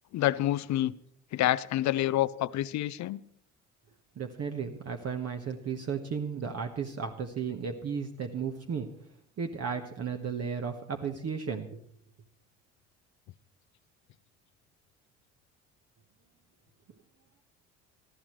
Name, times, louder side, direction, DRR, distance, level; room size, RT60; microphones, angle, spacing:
voice 1, 0.1-0.9 1.3-3.2, left 14 dB, 50° left, 19 dB, 0.6 m, -28 dB
voice 2, 4.2-8.9 9.4-11.8, right 6 dB, 40° right, 4 dB, 1.3 m, -34 dB
19.5 x 13.5 x 3.2 m, 0.67 s
hypercardioid pair, 55°, 37 cm